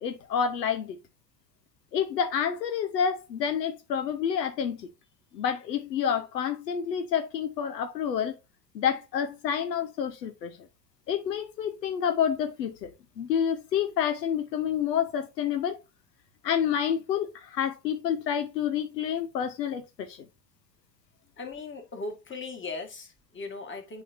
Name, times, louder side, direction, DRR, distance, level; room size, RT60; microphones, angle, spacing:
voice 1, 0.0-1.0 1.9-4.9 5.3-8.4 8.7-10.6 11.1-15.8 16.4-20.2, left 8 dB, 85° left, 1.0 m, -28 dB
voice 2, 21.4-24.0, left 3 dB, 25° left, 2.0 m, -38 dB
9.0 x 4.2 x 2.7 m
hypercardioid pair, 75°, 48 cm